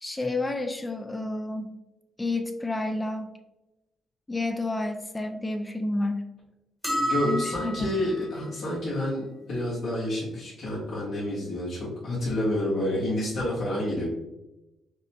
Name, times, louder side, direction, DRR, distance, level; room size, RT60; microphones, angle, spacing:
voice 1, 0.0-1.7 2.2-3.3 4.3-6.2 7.2-8.0, left 2 dB, 15° left, 5 dB, 0.3 m, -30 dB
sound 1, 6.8-8.2, right 1 dB, ahead, 1.0 m, -29 dB
voice 2, 7.0-14.0, left 1 dB, 70° left, -8 dB, 1.2 m, -29 dB
5.1 x 2.1 x 2.9 m, 0.98 s
cardioid pair, 90°, 0 cm